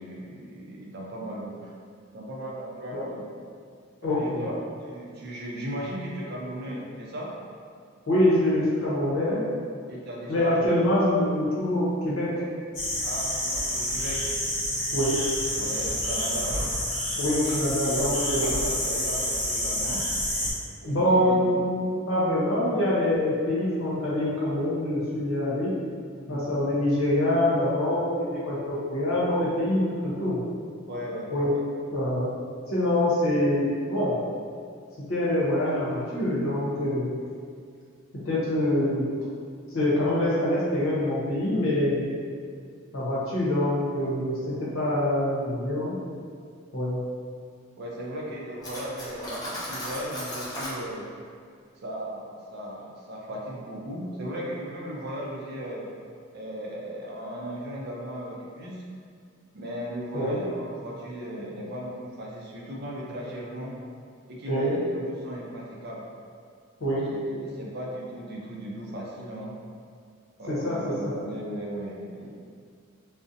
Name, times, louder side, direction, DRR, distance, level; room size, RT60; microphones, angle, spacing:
voice 1, 0.0-1.7 2.1-3.3 4.0-4.6 4.8-7.3 9.9-10.7 13.0-14.3 15.6-16.6 17.8-20.0 20.9-21.4 26.3-26.4 30.9-31.3 47.8-51.0 51.8-55.9 56.3-58.8 59.5-63.8 64.3-66.1 67.0-69.5 70.4-72.3, equal, 50° right, -3 dB, 0.4 m, -36 dB
voice 2, 4.0-4.4 8.1-9.4 10.3-12.4 14.9-15.2 17.2-18.6 20.8-25.8 26.3-30.4 31.3-31.5 31.9-32.3 32.7-34.2 35.1-37.1 38.2-39.1 39.7-42.0 42.9-46.0 46.7-47.0 60.1-60.4 64.5-64.8 66.8-67.1 70.5-71.1, left 1 dB, 85° left, -7 dB, 0.8 m, -25 dB
sound 1, 12.7-20.5, left 1 dB, 60° left, 1.1 m, -28 dB
Cutlery silverware, 48.6-50.8, equal, 20° left, 0.5 m, -36 dB
2.5 x 2.0 x 2.5 m, 2.2 s
head